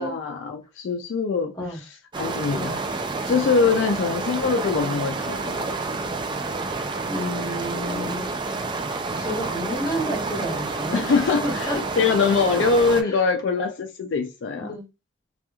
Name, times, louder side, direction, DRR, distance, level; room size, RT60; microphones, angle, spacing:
voice 1, 0.0-1.6 2.2-2.8 3.2-5.7 10.9-14.8, left 4 dB, 70° left, 0.4 m, -23 dB
sound 1, 2.1-13.0, right 3 dB, 25° right, 0.3 m, -29 dB
voice 2, 7.1-8.3 9.1-11.8 13.0-13.2 14.6-14.9, equal, 20° left, 1.1 m, -31 dB
2.9 x 2.4 x 2.2 m
head